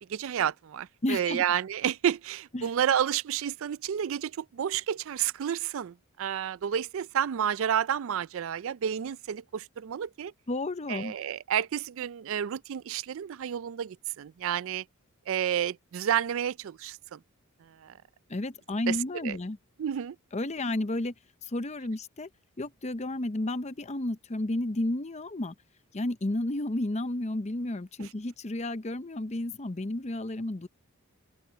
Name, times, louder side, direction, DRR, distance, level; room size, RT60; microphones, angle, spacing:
voice 1, 0.0-10.3 10.9-14.8 15.3-17.2 17.7-17.9 18.9-19.0 19.2-19.4 19.8-20.2 28.0-28.1, right 9 dB, 60° right, 0.3 m, -30 dB
voice 2, 1.0-1.4 2.5-2.7 10.5-11.1 18.3-19.6 20.3-21.1 21.4-22.3 22.6-25.5 25.9-30.7, left 1 dB, 30° left, 0.7 m, -32 dB
open air
head